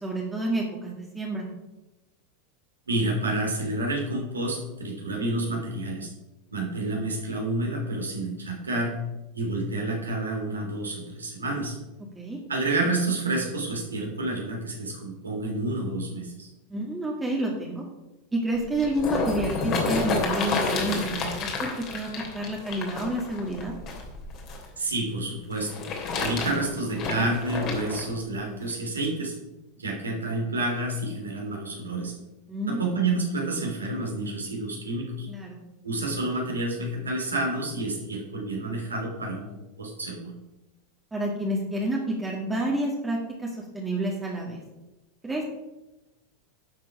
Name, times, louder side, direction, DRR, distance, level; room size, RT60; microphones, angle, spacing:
voice 1, 0.0-1.5 12.2-12.4 16.7-17.8 18.3-23.7 32.5-33.1 35.3-35.6 41.1-44.6 45.2-45.4, right 1 dB, 10° right, -2 dB, 2.1 m, -29 dB
voice 2, 2.9-6.1 6.5-8.9 9.3-11.8 12.5-16.5 24.8-25.8 26.2-29.3 29.7-32.1 32.7-35.3 35.8-40.3, right 2 dB, 80° right, 0 dB, 3.1 m, -29 dB
sound 1, 18.6-24.7 25.5-28.0 28.7-28.8, left 4 dB, 40° left, 2.9 m, -30 dB
11.5 x 7.5 x 4.9 m, 1.0 s
figure-of-eight pair, 85°, 0 cm